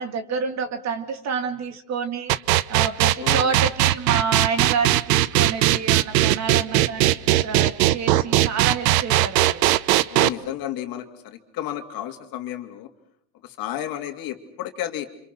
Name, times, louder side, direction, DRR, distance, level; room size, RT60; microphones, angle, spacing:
voice 1, 0.0-2.4 2.7-9.6, right 5 dB, 30° right, 9 dB, 2.2 m, -28 dB
sound 1, 2.3-10.3, right 15 dB, 75° right, 1.0 m, -18 dB
voice 2, 3.2-3.6 10.1-12.9 13.4-15.1, left 12 dB, 45° left, 5 dB, 3.0 m, -32 dB
29.5 x 26.5 x 6.2 m, 0.70 s
supercardioid pair, 135°, 50 cm